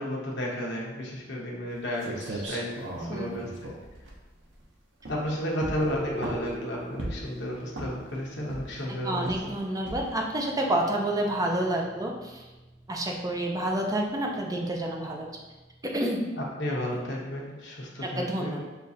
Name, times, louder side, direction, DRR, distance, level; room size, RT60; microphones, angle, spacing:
voice 1, 0.0-3.7 5.1-9.5 16.4-18.6, equal, 70° left, -3 dB, 1.0 m, -33 dB
sound 1, 1.7-1.8 2.0-4.6 5.0-5.3 5.6-6.6 7.0-7.4 7.7-8.1 8.5-8.9 9.3-9.5 9.9-10.2, right 1 dB, 75° right, 0.8 m, -37 dB
sound 2, 5.8-16.0, equal, 30° left, 1.2 m, -44 dB
voice 2, 9.0-12.4 12.9-15.3 15.9-16.2 18.2-18.6, right 1 dB, 20° right, 0 dB, 0.6 m, -29 dB
6.7 x 2.5 x 2.7 m, 1.1 s
head